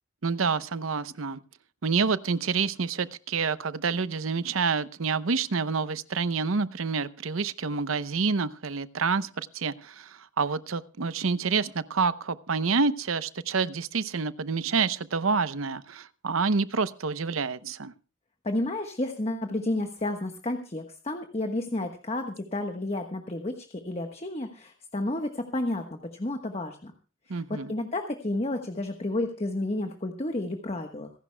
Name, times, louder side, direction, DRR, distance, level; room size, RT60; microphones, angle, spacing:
voice 1, 0.2-1.4 1.8-17.9 27.3-27.7, right 4 dB, 85° right, 0.8 m, -28 dB
voice 2, 18.4-26.9 27.3-31.1, left 1 dB, 30° left, 1.2 m, -31 dB
26.5 x 11.0 x 2.2 m
head